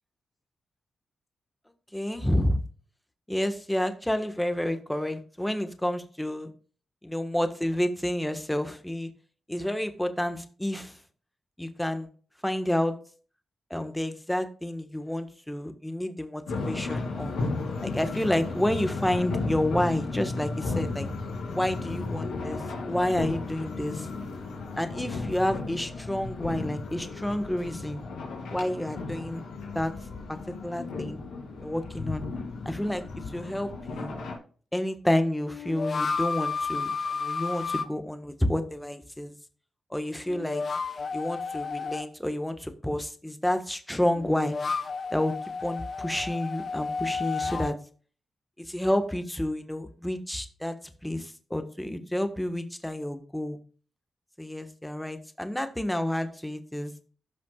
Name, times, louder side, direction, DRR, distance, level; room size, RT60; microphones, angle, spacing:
voice 1, 1.9-2.6 3.3-6.5 7.0-9.1 9.5-11.0 11.6-12.1 12.4-13.0 13.7-17.3 17.8-21.1 21.5-24.1 24.8-28.0 28.5-29.4 29.7-29.9 30.3-30.4 30.6-31.2 31.6-32.2 32.6-34.2 34.7-39.3 39.9-40.6 41.1-44.5 45.1-45.3 45.6-47.8 48.6-53.6 54.4-56.9, left 1 dB, 10° left, 8 dB, 1.3 m, -29 dB
sound 1, 16.5-34.4, left 3 dB, 90° left, 2.6 m, -34 dB
sound 2, 33.3-33.4 35.4-37.9 40.3-42.1 44.1-47.8, left 4 dB, 50° left, 0.7 m, -32 dB
15.5 x 5.8 x 2.4 m, 0.40 s
cardioid pair, 55°, 0 cm